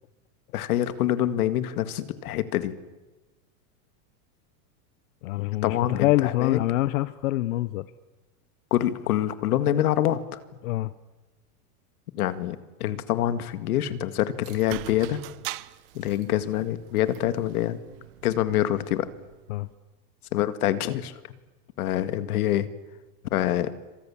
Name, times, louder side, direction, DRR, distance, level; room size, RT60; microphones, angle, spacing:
voice 1, 0.5-2.7 5.6-6.6 8.7-10.4 12.2-15.2 15.9-17.8 18.2-19.1 20.3-21.3 21.8-22.7 23.3-23.7, left 12 dB, 85° left, 11 dB, 2.1 m, -26 dB
voice 2, 5.2-7.8 10.6-10.9 19.5-19.7, left 16 dB, 65° left, 15 dB, 0.9 m, -25 dB
sound 1, 14.4-19.7, right 19 dB, 40° right, 0.8 m, -42 dB
28.0 x 26.0 x 7.3 m, 1.1 s
supercardioid pair, 175°, 43 cm